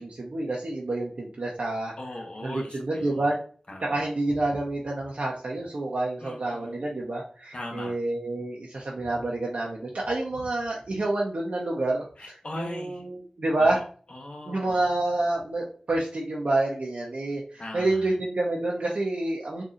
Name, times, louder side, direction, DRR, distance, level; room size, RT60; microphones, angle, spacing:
voice 1, 0.0-1.9 2.4-3.4 3.8-12.0 12.5-13.8 14.5-19.6, right 2 dB, 70° right, -3 dB, 0.7 m, -28 dB
voice 2, 2.0-3.3 3.7-4.1 6.2-6.8 7.5-8.0 12.2-13.0 13.6-13.8 14.1-15.1 17.6-18.1, left 1 dB, 55° left, 1 dB, 1.0 m, -40 dB
3.9 x 2.6 x 2.4 m, 0.43 s
wide cardioid pair, 50°, 2 cm